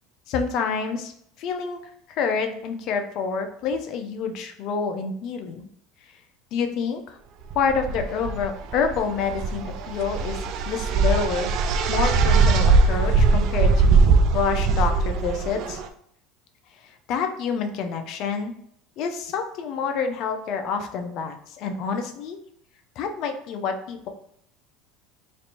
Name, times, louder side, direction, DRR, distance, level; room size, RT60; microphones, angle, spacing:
voice 1, 0.3-1.1 1.4-1.8 2.1-5.7 6.5-7.0 7.5-11.5 11.9-15.8 17.1-18.5 19.0-22.4 23.0-24.1, left 5 dB, 55° left, 6 dB, 0.6 m, -28 dB
sound 1, 7.5-15.9, right 4 dB, 55° right, 0.4 m, -21 dB
3.2 x 2.6 x 4.2 m, 0.69 s
supercardioid pair, 120°, 0 cm